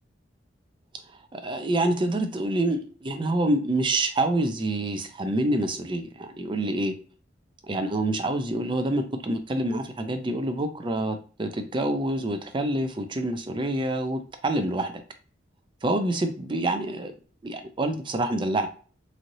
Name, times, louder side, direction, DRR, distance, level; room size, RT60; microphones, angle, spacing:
voice 1, 1.3-6.9 7.6-15.0 15.8-17.1 17.4-18.7, right 1 dB, 25° right, 7 dB, 0.4 m, -27 dB
3.1 x 2.6 x 2.6 m, 0.39 s
head